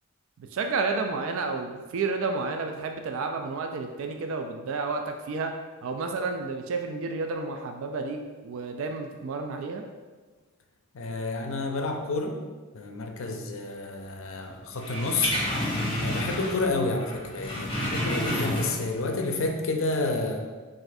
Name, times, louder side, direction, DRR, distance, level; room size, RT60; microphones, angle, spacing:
voice 1, 0.5-5.5 5.8-9.8, right 4 dB, 60° right, 4 dB, 0.3 m, -31 dB
voice 2, 10.9-12.4 12.7-15.3 16.0-20.4, left 3 dB, 60° left, 3 dB, 0.5 m, -30 dB
sound 1, 14.8-16.7 17.0-19.0 19.4-19.5, equal, 20° left, 0.7 m, -29 dB
6.0 x 2.5 x 2.6 m, 1.4 s
head